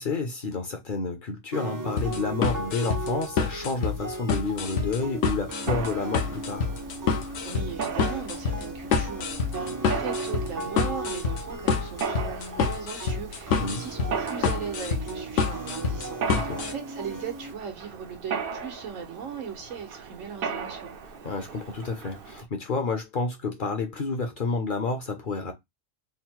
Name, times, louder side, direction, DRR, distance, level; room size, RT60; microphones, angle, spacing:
voice 1, 0.0-6.7 13.6-13.8 16.3-16.6 21.2-25.5, left 4 dB, 45° left, 0.8 m, -30 dB
sound 1, 1.5-17.5, right 2 dB, 30° right, 0.3 m, -37 dB
sound 2, 2.0-16.7, left 5 dB, 70° left, 1.0 m, -27 dB
Mechanisms, 5.7-22.4, right 6 dB, 55° right, 0.7 m, -37 dB
voice 2, 7.4-20.9, right 6 dB, 80° right, 1.4 m, -38 dB
3.7 x 2.1 x 4.3 m
omnidirectional pair, 1.3 m